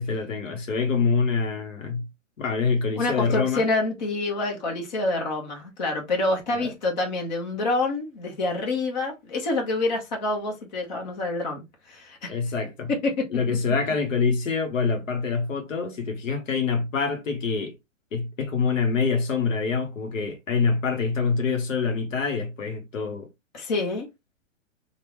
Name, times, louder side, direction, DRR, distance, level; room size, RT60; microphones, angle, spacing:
voice 1, 0.0-2.0 2.4-3.6 6.5-6.7 12.3-12.9 13.3-17.8 18.1-23.3, left 5 dB, 75° left, 1.1 m, -25 dB
voice 2, 3.0-11.6 11.9-12.3 13.0-13.2 23.5-24.1, left 2 dB, 35° left, 1.0 m, -27 dB
3.5 x 2.4 x 3.0 m
hypercardioid pair, 165°, 39 cm